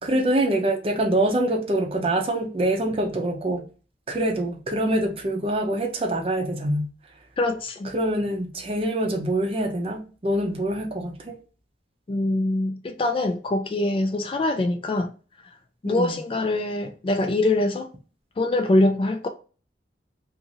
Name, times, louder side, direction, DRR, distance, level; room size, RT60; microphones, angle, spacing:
voice 1, 0.0-3.6 4.1-6.9 7.9-11.4 15.8-16.2, right 1 dB, 30° right, 0.6 m, -25 dB
voice 2, 7.4-7.9 12.1-15.1 15.8-17.9 18.4-19.3, left 2 dB, 30° left, 0.3 m, -23 dB
2.5 x 2.5 x 2.8 m
head